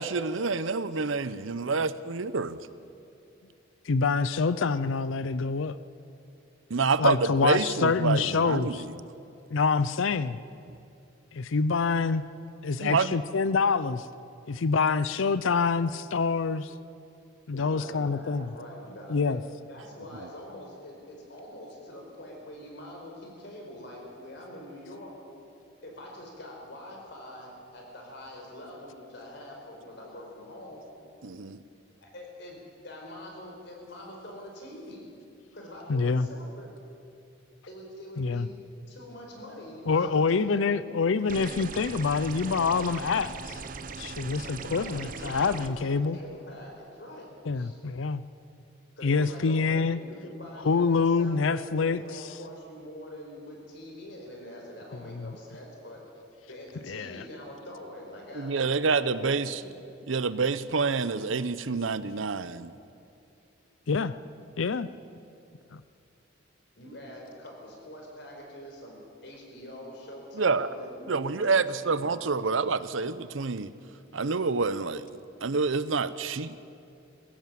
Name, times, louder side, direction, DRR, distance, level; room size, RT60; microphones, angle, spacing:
voice 1, 0.0-2.6 6.7-8.9 12.8-13.2 31.2-31.6 58.3-59.6 60.1-62.7 70.4-70.7 71.1-73.7 74.1-75.1 75.4-76.7, right 4 dB, 80° right, 15 dB, 0.7 m, -27 dB
voice 2, 3.9-5.7 7.0-8.8 9.5-10.4 11.3-12.2 12.6-14.1 14.5-16.7 17.5-18.5 19.1-19.4 35.9-36.3 38.2-38.5 39.9-43.6 44.0-46.2 47.5-48.2 49.0-50.0 50.6-52.0 55.1-55.4 56.9-57.2 63.9-64.1 64.6-64.9 65.7-65.8, left 4 dB, 75° left, 15 dB, 0.5 m, -26 dB
voice 3, 17.5-19.4 19.7-25.2 25.8-30.8 32.0-35.1 35.5-36.7 37.7-38.5 38.9-41.0 44.6-47.8 49.0-56.0 56.5-59.8 66.8-69.0 69.2-72.3, left 1 dB, 60° left, 0 dB, 4.7 m, -44 dB
sound 1, 41.3-45.7, right 4 dB, 40° right, 0.8 m, -39 dB
21.5 x 16.0 x 7.6 m, 2.6 s
head